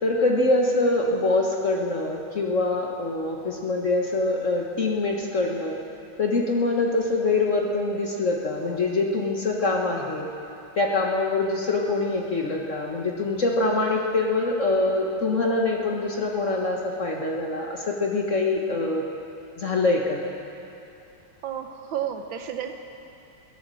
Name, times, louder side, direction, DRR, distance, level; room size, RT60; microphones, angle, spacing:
voice 1, 0.0-5.8 6.2-10.3 10.7-19.0 19.6-20.2, left 2 dB, 45° left, -1 dB, 1.2 m, -24 dB
voice 2, 21.4-22.7, right 9 dB, 70° right, 7 dB, 1.4 m, -31 dB
16.5 x 11.0 x 7.6 m, 2.8 s
omnidirectional pair, 2.4 m